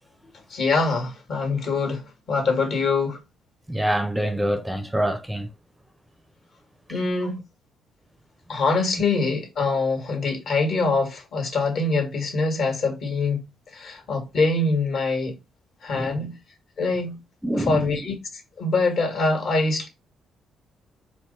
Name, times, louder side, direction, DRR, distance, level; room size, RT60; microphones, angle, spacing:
voice 1, 0.5-2.0 2.3-3.2 6.9-7.4 8.5-13.4 13.7-15.3 15.8-16.3 16.8-17.1 17.5-18.1 18.6-19.9, left 3 dB, 65° left, 1.7 m, -24 dB
voice 2, 3.7-5.5 15.9-16.3 17.4-17.9, right 1 dB, 5° right, 0.5 m, -26 dB
4.6 x 2.1 x 3.9 m
cardioid pair, 90°, 0 cm